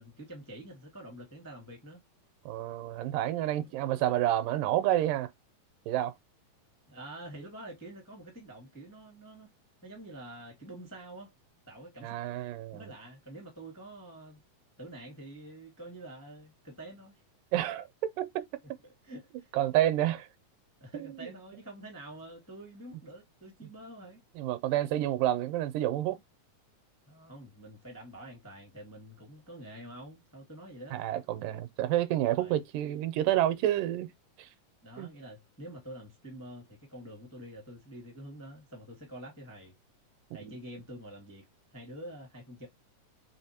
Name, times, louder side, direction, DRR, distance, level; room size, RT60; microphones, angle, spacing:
voice 1, 0.0-2.0 3.6-4.2 6.9-9.5 9.8-11.3 11.7-12.2 12.7-14.4 14.8-17.2 18.8-19.5 20.8-24.2 27.0-31.0 32.3-32.6 34.8-39.7 40.3-41.4 41.7-42.7, right 1 dB, 10° left, 0.7 m, -47 dB
voice 2, 2.5-5.3 5.9-6.1 12.0-12.8 17.5-17.9 18.2-18.5 19.5-20.3 20.9-21.1 24.4-26.2 30.9-34.1 34.4-34.5 35.0-35.1 40.4-40.6, right 13 dB, 85° right, 2.2 m, -29 dB
5.0 x 3.7 x 2.8 m
omnidirectional pair, 3.8 m